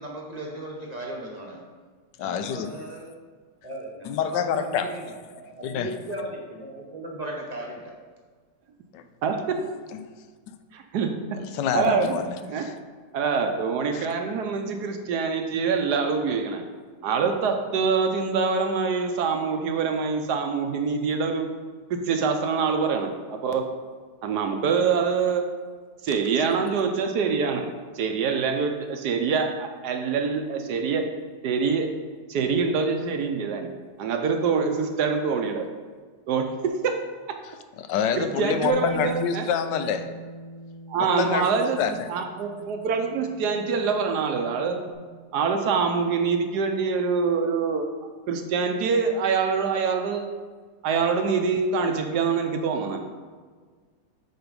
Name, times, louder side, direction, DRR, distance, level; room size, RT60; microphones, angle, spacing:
voice 1, 0.0-1.6 2.2-3.1 3.6-7.9, right 1 dB, 30° right, -2 dB, 0.8 m, -37 dB
voice 2, 2.2-2.7 4.0-4.9 5.6-5.9 8.9-9.0 11.4-12.7 13.9-14.1 37.8-40.1 41.0-42.1, left 7 dB, 80° left, 9 dB, 1.2 m, -27 dB
voice 3, 9.2-9.6 10.7-11.4 11.7-12.2 12.4-12.7 13.1-16.6 17.0-21.5 21.9-23.7 24.2-25.6 26.0-31.1 31.4-31.9 32.3-35.7 36.3-37.0 38.2-39.5 40.9-41.8 42.1-44.8 45.3-47.9 48.3-50.3 50.8-53.0, right 5 dB, 70° right, 5 dB, 1.2 m, -25 dB
Bass guitar, 38.7-44.9, equal, 40° left, 2.1 m, -40 dB
7.9 x 4.5 x 5.2 m, 1.5 s
omnidirectional pair, 1.9 m